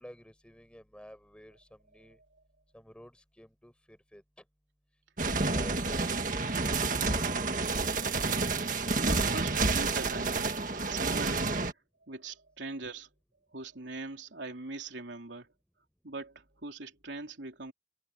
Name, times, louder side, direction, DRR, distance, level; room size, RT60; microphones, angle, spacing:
voice 1, 0.0-2.2 2.7-4.2 5.2-6.8 7.1-7.9, equal, 5° left, 5.8 m, -51 dB
sound 1, 5.2-11.7, right 3 dB, 45° right, 1.8 m, -29 dB
voice 2, 8.9-11.6 12.1-13.1 13.5-15.5 16.0-17.7, right 3 dB, 90° right, 3.5 m, -41 dB
head